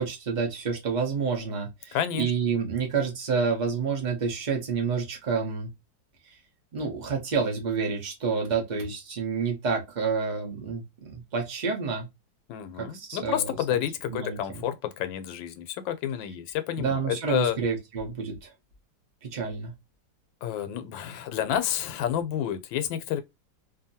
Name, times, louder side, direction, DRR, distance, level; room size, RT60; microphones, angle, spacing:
voice 1, 0.0-5.7 6.3-6.4 6.7-12.1 12.8-13.8 14.1-14.6 16.8-18.5 19.3-19.7, right 5 dB, 85° right, 0.4 m, -29 dB
voice 2, 1.9-2.3 12.5-17.6 20.4-23.2, left 10 dB, 80° left, 1.3 m, -30 dB
2.8 x 2.6 x 2.7 m
omnidirectional pair, 2.1 m